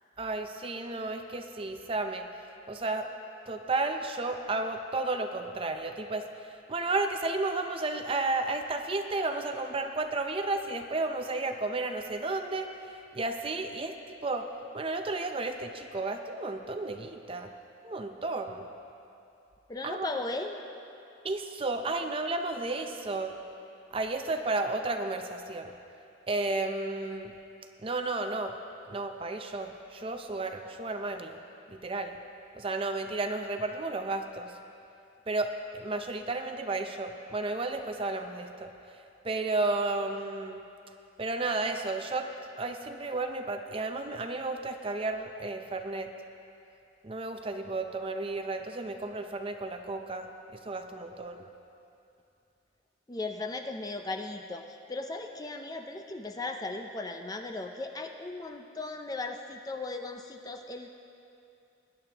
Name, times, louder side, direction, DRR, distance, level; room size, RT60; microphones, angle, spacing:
voice 1, 0.2-2.3 2.7-3.1 3.5-12.7 13.1-14.0 14.2-14.5 14.7-17.5 17.8-18.7 19.8-20.1 21.2-23.4 23.9-25.7 26.3-27.3 27.8-28.5 28.9-31.4 31.7-32.2 32.5-34.6 35.3-38.7 39.2-40.6 41.2-42.3 42.6-46.1 47.0-50.3 50.6-51.5, right 2 dB, 30° right, 6 dB, 0.6 m, -32 dB
voice 2, 19.7-20.6 53.1-60.9, left 2 dB, 20° left, 5 dB, 0.4 m, -37 dB
20.5 x 11.0 x 2.9 m, 2.6 s
head